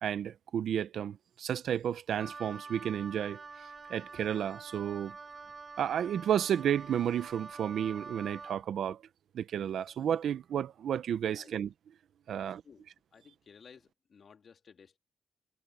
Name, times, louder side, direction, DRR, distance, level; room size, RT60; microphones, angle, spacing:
voice 1, 0.0-5.2 5.8-9.0 9.3-11.7 12.3-12.6, right 9 dB, 70° right, 1.0 m, -32 dB
Wind instrument woodwind instrument, 2.2-8.6, right 4 dB, 35° right, 3.9 m, -47 dB
voice 2, 12.3-15.0, left 6 dB, 45° left, 3.1 m, -57 dB
cardioid pair, 105°, 0 cm